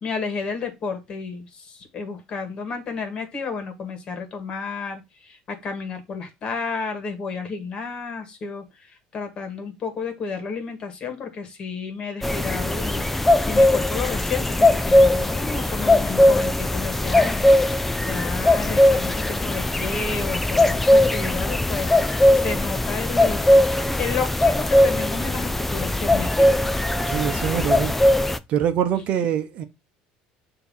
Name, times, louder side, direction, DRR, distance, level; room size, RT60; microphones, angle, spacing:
voice 1, 0.0-17.4 18.0-26.5, left 5 dB, 35° left, 1.8 m, -32 dB
sound 1, 12.2-28.4, left 1 dB, 5° left, 0.4 m, -19 dB
voice 2, 27.1-27.9 28.5-29.6, right 9 dB, 50° right, 0.8 m, -24 dB
6.9 x 2.9 x 5.5 m
cardioid pair, 140°, 3 cm